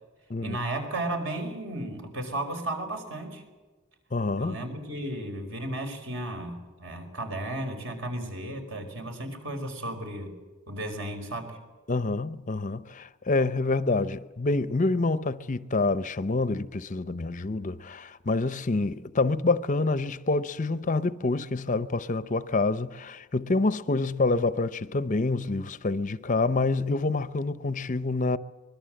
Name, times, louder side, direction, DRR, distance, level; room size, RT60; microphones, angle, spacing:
voice 1, 0.4-3.4 4.4-10.3 10.7-11.6, right 1 dB, 60° right, 5.0 m, -34 dB
voice 2, 4.1-4.6 11.9-28.4, left 3 dB, 35° left, 0.6 m, -27 dB
24.5 x 21.0 x 7.8 m
head